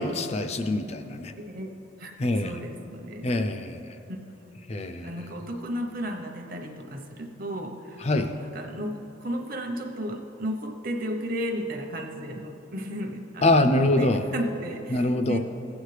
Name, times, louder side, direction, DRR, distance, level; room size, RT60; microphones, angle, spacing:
voice 1, 0.0-1.3 2.2-2.6 3.2-3.8 4.7-5.1 8.0-8.3 13.4-14.2 14.9-15.4, left 2 dB, 30° left, 8 dB, 0.4 m, -24 dB
voice 2, 1.4-1.7 2.0-3.3 4.1-4.5 5.0-15.4, equal, 45° right, 3 dB, 0.8 m, -34 dB
16.0 x 8.1 x 3.3 m, 2.8 s
head